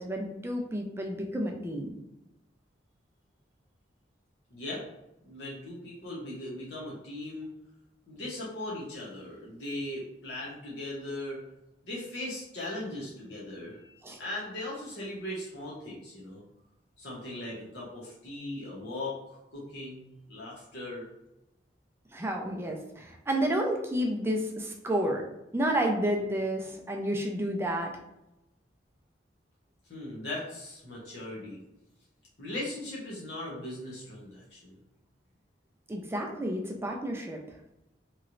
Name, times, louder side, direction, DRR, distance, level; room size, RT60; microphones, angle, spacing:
voice 1, 0.0-1.9 14.0-14.2 22.1-25.3 25.5-27.9 35.9-37.4, right 1 dB, 15° right, 1 dB, 0.4 m, -30 dB
voice 2, 4.5-4.8 5.2-7.5 8.1-11.4 11.8-16.4 17.0-21.1 29.9-31.6 32.4-34.7, left 1 dB, 70° left, -5 dB, 0.9 m, -39 dB
3.1 x 2.9 x 2.5 m, 0.89 s
head